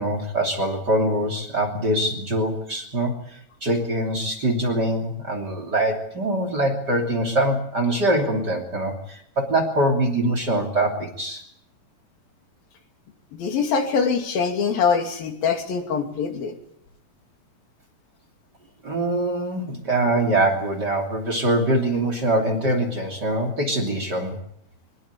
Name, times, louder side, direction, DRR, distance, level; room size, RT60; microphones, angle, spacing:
voice 1, 0.0-11.4 18.8-24.4, right 1 dB, 30° right, 5 dB, 3.1 m, -23 dB
voice 2, 13.3-16.5, left 6 dB, 70° left, 5 dB, 4.2 m, -23 dB
23.5 x 21.0 x 8.5 m, 0.72 s
omnidirectional pair, 4.3 m